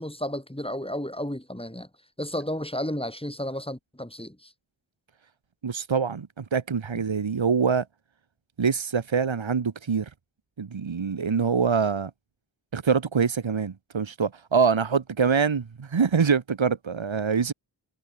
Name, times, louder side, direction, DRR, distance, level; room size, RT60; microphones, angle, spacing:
voice 1, 0.0-1.9 2.2-4.5, left 1 dB, 10° left, 4.2 m, -32 dB
voice 2, 5.6-7.8 8.6-10.1 10.6-12.1 12.7-17.5, right 6 dB, 80° right, 1.4 m, -24 dB
wide cardioid pair, 50°, 46 cm